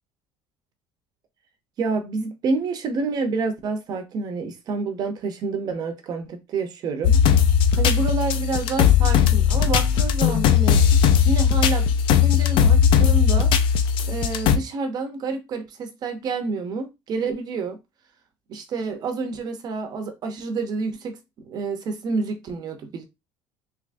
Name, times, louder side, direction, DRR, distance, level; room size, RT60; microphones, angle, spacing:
voice 1, 1.8-7.1 7.8-10.8 11.3-11.9 12.2-13.5 14.1-17.8 18.5-21.2 21.4-23.0, right 4 dB, 35° right, 0.6 m, -28 dB
sound 1, 7.0-14.6, left 8 dB, 45° left, 0.3 m, -18 dB
3.4 x 2.9 x 2.5 m
cardioid pair, 170°, 12 cm